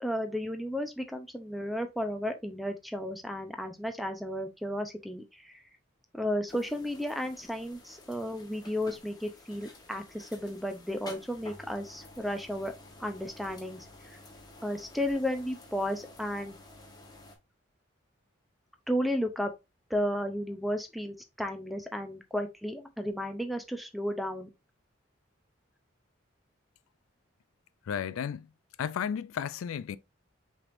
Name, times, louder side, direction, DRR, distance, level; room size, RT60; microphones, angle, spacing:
voice 1, 0.0-5.5 6.1-12.7 13.0-14.2 14.6-16.6 18.9-19.5 19.9-24.5, equal, ahead, 0.5 m, -33 dB
sound 1, 6.5-17.4, left 2 dB, 20° left, 1.0 m, -51 dB
voice 2, 27.8-28.5 28.8-30.0, left 8 dB, 85° left, 0.3 m, -33 dB
5.9 x 3.4 x 2.5 m
head